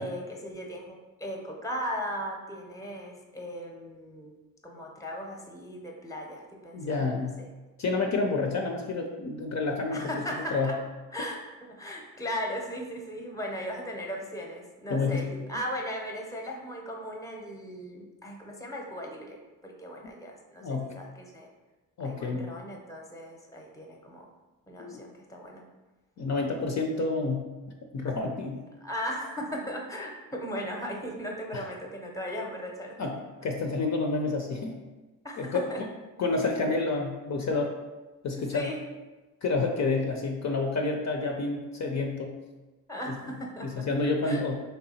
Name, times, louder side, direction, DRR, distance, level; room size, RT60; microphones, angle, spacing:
voice 1, 0.0-4.4 4.6-7.3 9.9-10.8 11.1-11.4 11.7-21.1 21.3-21.5 22.0-24.3 24.7-25.6 28.8-33.0 35.2-35.8 38.4-38.9 42.9-43.9 44.2-44.4, equal, 10° left, 1 dB, 0.7 m, -37 dB
voice 2, 6.7-7.4 7.8-10.0 10.5-10.7 14.9-15.3 20.6-20.9 22.0-22.5 24.8-25.0 26.2-27.5 27.9-28.6 31.5-31.7 33.0-33.2 33.4-34.7 35.4-35.9 36.2-37.8 38.2-38.7 39.4-42.3 43.1-43.2 43.6-44.6, left 3 dB, 50° left, 2 dB, 0.6 m, -29 dB
3.4 x 2.8 x 4.1 m, 1.2 s
cardioid pair, 85°, 36 cm